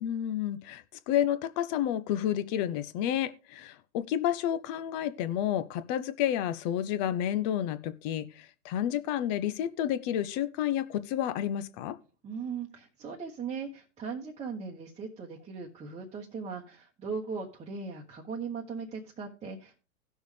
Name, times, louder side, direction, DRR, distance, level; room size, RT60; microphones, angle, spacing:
voice 1, 0.0-12.0, left 11 dB, 30° left, 0.6 m, -30 dB
voice 2, 12.2-19.8, right 5 dB, 15° right, 1.1 m, -38 dB
17.0 x 6.3 x 3.2 m
hypercardioid pair, 125°, 45 cm